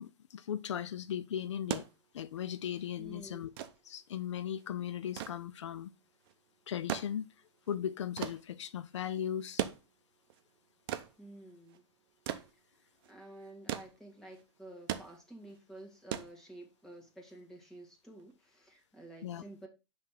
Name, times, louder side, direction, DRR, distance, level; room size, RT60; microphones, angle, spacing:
voice 1, 0.0-1.8 2.1-3.5 3.9-5.9 6.7-7.3 7.7-9.7 19.2-19.4, left 9 dB, 90° left, 0.5 m, -37 dB
sound 1, 1.5-17.0 18.2-18.3, right 11 dB, 55° right, 0.7 m, -42 dB
voice 2, 3.0-3.5 11.2-11.9 12.7-19.7, right 1 dB, 5° left, 1.7 m, -51 dB
5.9 x 3.3 x 5.6 m
hypercardioid pair, 140°, 15 cm